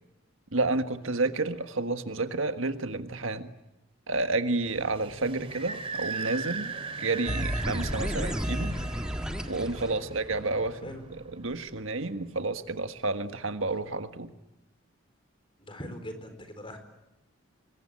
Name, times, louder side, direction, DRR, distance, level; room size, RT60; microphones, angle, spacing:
voice 1, 0.5-3.5 4.1-6.7 7.0-8.7 9.5-10.8 11.4-14.3, right 3 dB, 75° right, 9 dB, 1.6 m, -30 dB
sound 1, 4.7-12.0, right 3 dB, 25° right, 2.9 m, -39 dB
sound 2, 7.3-10.5, equal, 5° right, 1.7 m, -32 dB
voice 2, 15.6-16.8, equal, 25° left, 7 dB, 4.2 m, -42 dB
26.0 x 22.0 x 10.0 m, 0.91 s
head